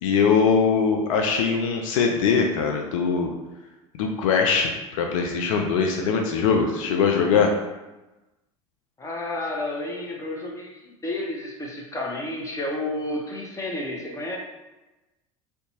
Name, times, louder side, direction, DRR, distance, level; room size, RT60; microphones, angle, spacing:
voice 1, 0.0-3.3 3.9-7.5, left 5 dB, 70° left, 2 dB, 0.4 m, -22 dB
voice 2, 9.0-14.4, left 1 dB, 15° left, -2 dB, 0.7 m, -31 dB
2.6 x 2.2 x 2.7 m, 1.1 s
hypercardioid pair, 75°, 17 cm